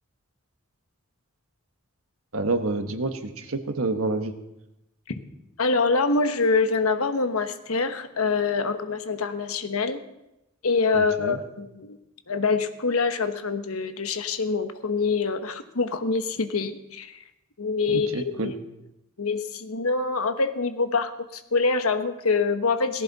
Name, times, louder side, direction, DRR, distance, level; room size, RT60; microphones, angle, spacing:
voice 1, 2.3-4.3 10.9-11.4 17.9-18.5, right 2 dB, 80° right, 7 dB, 1.4 m, -28 dB
voice 2, 5.6-10.0 10.6-12.0 12.3-17.2 17.6-18.5 19.2-23.0, left 4 dB, 85° left, 8 dB, 1.2 m, -25 dB
18.0 x 15.0 x 4.1 m, 0.91 s
head